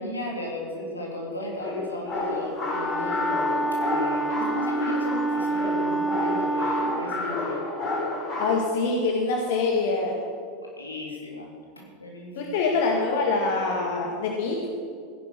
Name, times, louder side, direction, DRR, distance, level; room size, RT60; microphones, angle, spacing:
voice 1, 0.0-7.6 10.6-12.6, left 1 dB, 85° left, -2 dB, 3.3 m, -35 dB
sound 1, 1.5-8.5, left 2 dB, 40° left, 4.8 m, -30 dB
Wind instrument woodwind instrument, 2.6-7.0, right 2 dB, 15° left, 1.0 m, -27 dB
voice 2, 8.4-10.2 12.4-14.7, left 3 dB, 60° left, 1 dB, 1.9 m, -25 dB
17.0 x 11.0 x 6.2 m, 2.2 s
figure-of-eight pair, 85°, 0 cm